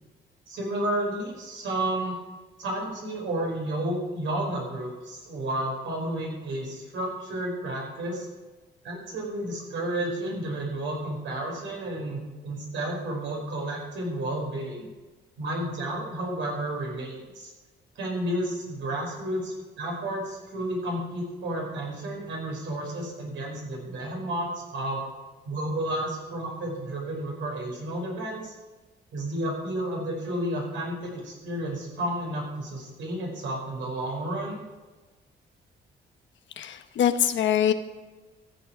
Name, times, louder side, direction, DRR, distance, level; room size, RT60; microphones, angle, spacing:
voice 1, 0.5-2.1 2.6-8.3 8.8-14.9 15.4-17.5 18.0-25.0 25.4-28.5 29.1-34.6, right 1 dB, 75° right, -1 dB, 5.2 m, -31 dB
voice 2, 36.6-37.7, left 9 dB, 70° left, 9 dB, 1.1 m, -23 dB
14.5 x 7.8 x 6.1 m, 1.2 s
cardioid pair, 90°, 20 cm